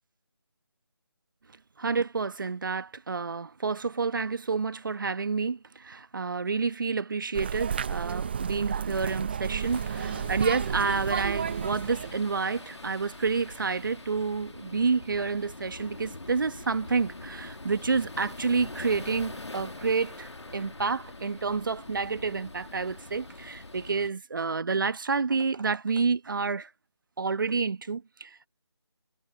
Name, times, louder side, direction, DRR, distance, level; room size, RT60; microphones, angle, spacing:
voice 1, 1.8-26.7 27.2-28.5, right 4 dB, 50° right, 1.3 m, -29 dB
sound 1, 7.3-12.2, right 7 dB, 25° right, 0.7 m, -32 dB
sound 2, 9.6-24.1, left 2 dB, 85° left, 1.9 m, -44 dB
figure-of-eight pair, 160°, 14 cm